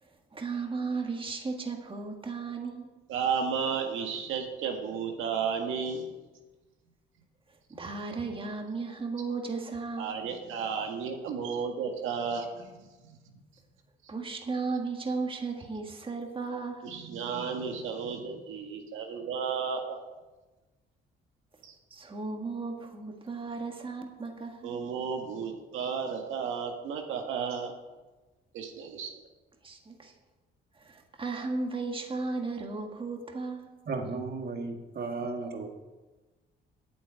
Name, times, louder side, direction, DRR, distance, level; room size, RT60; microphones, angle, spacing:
voice 1, 0.0-2.9 7.7-10.1 14.1-17.0 21.9-24.8 29.6-30.1 30.7-33.7, right 4 dB, 25° right, 3 dB, 1.8 m, -35 dB
voice 2, 3.1-6.1 10.0-13.4 16.8-20.0 21.7-21.8 24.6-27.7 28.5-29.1, right 6 dB, 90° right, 3 dB, 1.7 m, -33 dB
voice 3, 33.9-35.7, right 3 dB, 55° right, 4 dB, 2.0 m, -34 dB
8.4 x 8.2 x 9.2 m, 1.2 s
cardioid pair, 90°, 20 cm